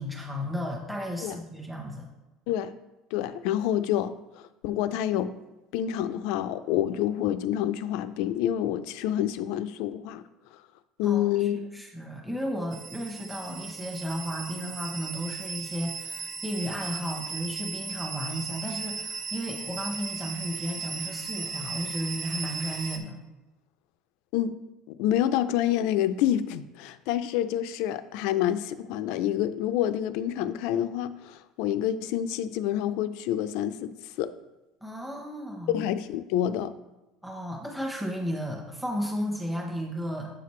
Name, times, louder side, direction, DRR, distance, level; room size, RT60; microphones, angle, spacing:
voice 1, 0.0-2.1 11.0-23.2 34.8-35.8 37.2-40.3, equal, ahead, 0 dB, 0.9 m, -34 dB
voice 2, 3.1-5.3 5.7-10.2 11.0-11.6 24.3-24.6 24.9-33.9 34.2-34.3 35.7-36.7, left 11 dB, 70° left, 13 dB, 0.4 m, -28 dB
sound 1, 12.7-23.0, right 5 dB, 35° right, 0.7 m, -37 dB
7.9 x 5.8 x 3.2 m, 1.0 s
cardioid pair, 160°, 0 cm